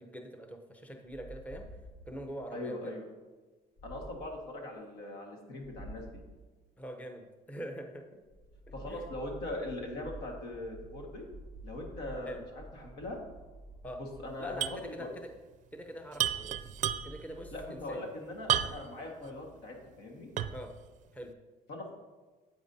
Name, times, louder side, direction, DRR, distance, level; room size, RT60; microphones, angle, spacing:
voice 1, 0.0-1.7 2.1-3.0 6.8-8.2 8.9-9.0 12.2-12.4 13.8-14.0 14.4-15.3 15.7-16.6 17.0-18.1 19.2-19.4 20.5-20.7 21.1-21.3, equal, 10° left, 4 dB, 0.8 m, -43 dB
sound 1, 1.1-2.3 3.8-4.4 5.6-6.3 8.2-15.0 16.3-17.7, right 2 dB, 70° left, 1.5 m, -50 dB
voice 2, 2.5-3.1 3.8-6.1 8.7-11.2 11.6-13.2 14.0-15.1 17.5-20.3 21.7-21.9, left 2 dB, 85° left, 1 dB, 1.7 m, -41 dB
sound 2, 14.6-14.9 15.1-15.2 16.1-17.3 18.5-19.0 19.5-19.6 20.4-20.7, right 10 dB, 50° right, 0.4 m, -31 dB
9.2 x 8.3 x 2.8 m, 1.3 s
cardioid pair, 110°, 17 cm